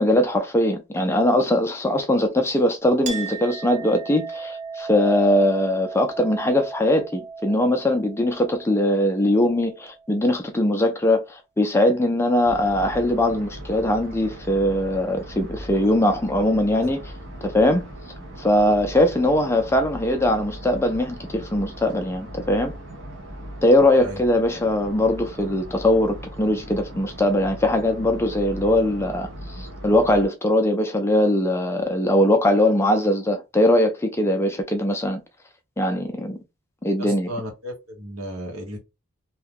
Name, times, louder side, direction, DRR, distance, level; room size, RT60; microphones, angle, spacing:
voice 1, 0.0-17.0 17.4-17.9 18.4-22.7 23.6-29.3 29.6-35.2 35.8-36.4 36.8-37.3, left 1 dB, 10° left, 0.3 m, -21 dB
Chink clink, 3.1-10.1, right 5 dB, 35° right, 0.6 m, -36 dB
sound 1, 12.4-30.3, right 1 dB, 60° right, 0.9 m, -38 dB
voice 2, 37.0-38.8, equal, 80° right, 1.2 m, -34 dB
2.7 x 2.3 x 3.5 m
head